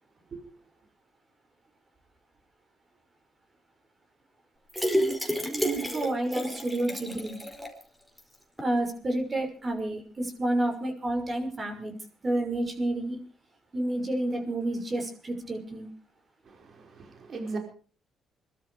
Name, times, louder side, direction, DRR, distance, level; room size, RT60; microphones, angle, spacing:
sound 1, 4.7-7.8 8.2-8.3 8.6-8.7, equal, 5° right, 4.7 m, -30 dB
voice 1, 5.5-7.4 8.6-11.9 12.2-13.2 13.7-15.9, right 1 dB, 35° right, 6.0 m, -30 dB
voice 2, 16.4-17.6, right 3 dB, 55° right, 5.0 m, -38 dB
23.0 x 12.5 x 5.0 m
cardioid pair, 80°, 0 cm